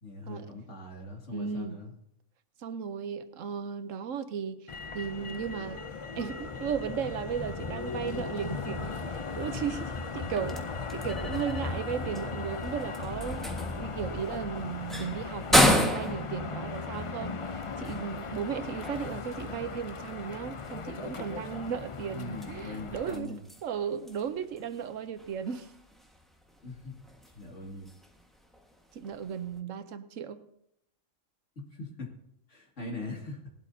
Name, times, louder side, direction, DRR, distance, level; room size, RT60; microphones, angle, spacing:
voice 1, 0.0-1.9 22.1-23.5 26.6-27.0 27.3-27.9 31.7-32.1 32.5-33.5, left 2 dB, 65° left, 0 dB, 2.6 m, -41 dB
voice 2, 1.3-1.8 2.6-4.6 4.9-5.8 6.1-10.6 10.9-13.5 13.8-25.7 28.9-30.4, right 7 dB, 80° right, 11 dB, 1.1 m, -35 dB
Motor vehicle (road), 4.7-23.2, left 4 dB, 50° left, 0.4 m, -37 dB
sound 1, 10.0-29.6, equal, ahead, 1.4 m, -34 dB
19.0 x 12.0 x 2.7 m, 0.77 s
omnidirectional pair, 1.3 m